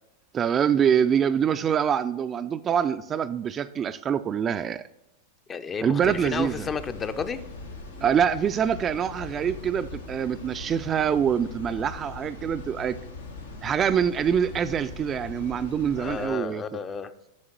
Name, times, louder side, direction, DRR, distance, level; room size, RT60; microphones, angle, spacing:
voice 1, 0.3-4.8 5.8-6.7 8.0-13.0 13.6-16.6, right 8 dB, 30° right, 11 dB, 0.3 m, -25 dB
voice 2, 5.5-7.5 16.0-17.1, left 5 dB, 25° left, 11 dB, 0.5 m, -32 dB
sound 1, 6.0-16.3, left 3 dB, 85° left, 1.3 m, -40 dB
7.3 x 6.3 x 4.4 m, 0.85 s
hypercardioid pair, 100°, 0 cm